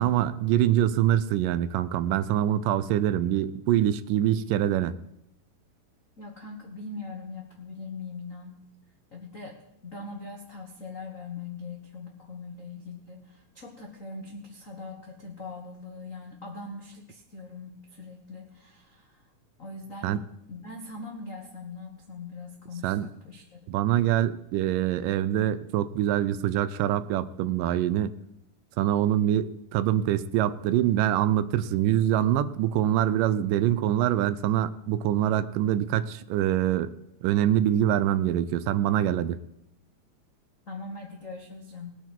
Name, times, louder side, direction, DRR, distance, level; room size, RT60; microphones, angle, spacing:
voice 1, 0.0-4.9 20.0-20.2 22.8-23.1 23.7-28.1 28.8-36.9 37.2-39.4, right 11 dB, 80° right, 15 dB, 2.1 m, -24 dB
voice 2, 6.2-8.6 9.1-19.3 19.6-20.2 20.5-23.7 40.7-42.0, left 3 dB, 85° left, 0 dB, 0.7 m, -41 dB
20.0 x 8.0 x 4.5 m, 0.81 s
omnidirectional pair, 3.9 m